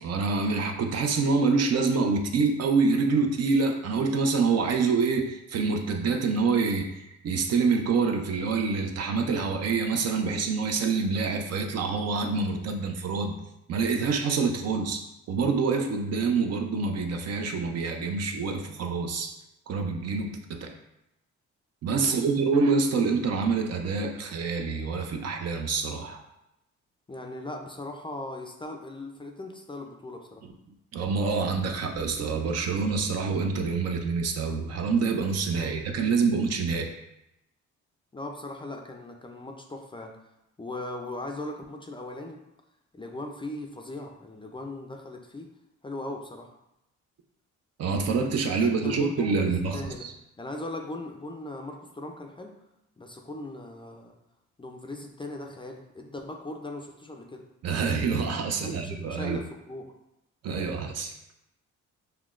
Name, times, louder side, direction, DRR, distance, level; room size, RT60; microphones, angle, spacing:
voice 1, 0.0-13.4 13.7-15.0 15.3-19.3 19.7-20.7 21.8-26.2 30.9-36.9 47.8-50.1 57.6-59.4 60.4-61.1, right 4 dB, 55° right, 4 dB, 0.6 m, -26 dB
voice 2, 21.9-22.2 27.1-30.4 35.6-35.7 38.1-40.2 40.6-42.4 42.9-45.5 45.8-46.5 48.6-50.1 50.4-52.5 53.0-54.1 54.6-57.4 58.6-59.9, left 2 dB, 15° left, 2 dB, 0.4 m, -39 dB
5.8 x 2.1 x 2.4 m, 0.87 s
cardioid pair, 90°, 30 cm